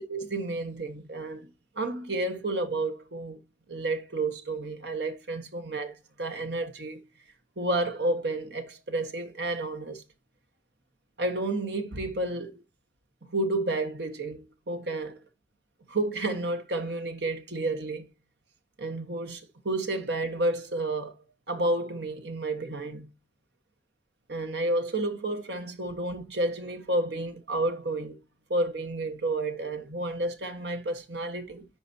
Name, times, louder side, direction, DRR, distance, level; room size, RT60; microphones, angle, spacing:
voice 1, 0.0-1.5 1.7-3.4 3.7-7.0 7.6-10.0 11.2-12.6 13.2-15.1 15.9-18.1 18.8-21.2 21.5-23.1 24.3-28.2 28.5-31.7, right 2 dB, 85° right, 1.5 m, -31 dB
15.0 x 5.1 x 2.8 m
head